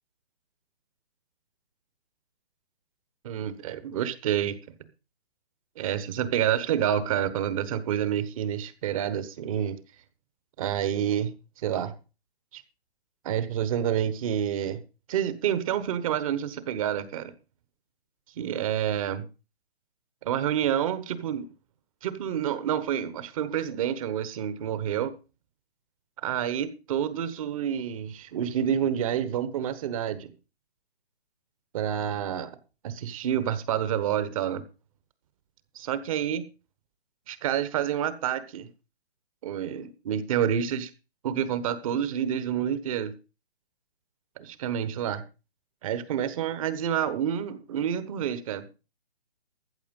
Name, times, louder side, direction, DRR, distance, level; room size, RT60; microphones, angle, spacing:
voice 1, 3.2-4.6 5.8-9.8 10.6-11.3 11.6-11.9 12.5-12.6 13.2-14.8 15.1-17.3 18.4-19.2 20.2-21.4 22.0-25.1 26.2-30.3 31.7-32.5 32.8-34.6 35.7-36.4 37.3-38.7 39.4-40.9 41.2-43.1 44.4-45.2 45.8-48.6, right 9 dB, 35° right, 1.3 m, -28 dB
14.5 x 7.1 x 5.4 m
hypercardioid pair, 150°, 31 cm